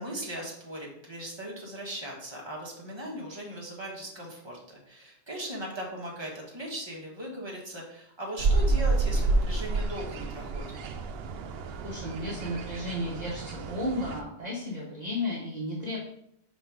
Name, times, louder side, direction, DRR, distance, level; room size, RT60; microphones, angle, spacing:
voice 1, 0.0-10.8, equal, 25° right, -3 dB, 1.5 m, -38 dB
sound 1, 8.4-14.2, right 3 dB, 70° right, 0.8 m, -29 dB
voice 2, 11.8-16.0, left 1 dB, 40° right, -6 dB, 1.2 m, -33 dB
5.1 x 4.0 x 4.7 m, 0.73 s
omnidirectional pair, 1.1 m